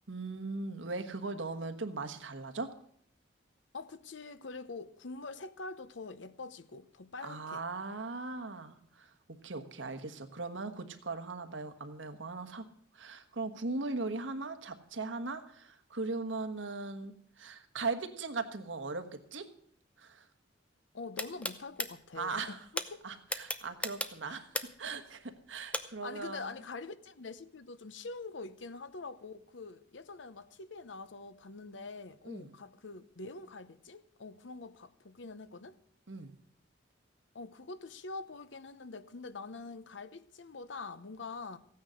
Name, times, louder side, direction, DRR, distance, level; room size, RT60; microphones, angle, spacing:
voice 1, 0.1-2.7 7.2-12.6 12.9-19.0 19.3-19.4 20.0-20.3 22.2-22.6 23.0-26.5 32.3-32.5 36.1-36.3, right 3 dB, 90° right, 1.4 m, -39 dB
voice 2, 3.7-7.6 20.9-23.0 24.3-24.4 26.0-35.8 37.3-41.6, left 3 dB, 80° left, 0.8 m, -45 dB
sound 1, 21.2-21.9 22.8-22.9 23.3-24.9 25.7-25.8, left 2 dB, 5° left, 0.7 m, -34 dB
15.0 x 9.4 x 6.4 m
head